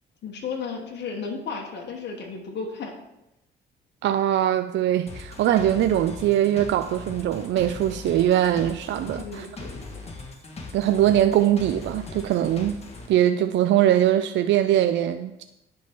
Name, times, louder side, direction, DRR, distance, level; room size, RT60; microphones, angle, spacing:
voice 1, 0.2-2.9 9.1-9.8, left 5 dB, 60° left, 2 dB, 1.2 m, -34 dB
voice 2, 4.0-9.5 10.7-12.8 13.1-15.4, right 11 dB, 65° right, 9 dB, 0.4 m, -22 dB
sound 1, 5.1-13.1, left 3 dB, 30° left, 1.4 m, -39 dB
10.0 x 3.7 x 4.4 m, 0.89 s
cardioid pair, 90°, 20 cm